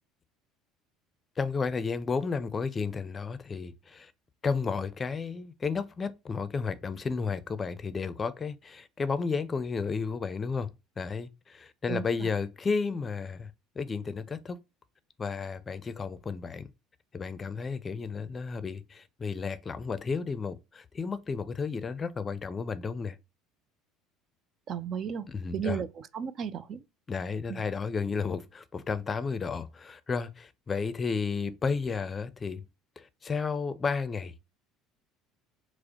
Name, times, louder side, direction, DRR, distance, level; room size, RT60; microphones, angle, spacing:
voice 1, 1.4-4.1 4.4-10.7 11.0-13.5 13.8-14.6 15.2-16.7 17.1-23.2 25.3-25.8 27.1-32.6 33.0-34.3, left 5 dB, 30° left, 0.5 m, -32 dB
voice 2, 11.9-12.3 24.7-25.3 25.5-25.9 26.1-26.8 27.5-27.6, right 7 dB, 50° right, 0.4 m, -34 dB
4.7 x 2.0 x 2.8 m
hypercardioid pair, 80°, 0 cm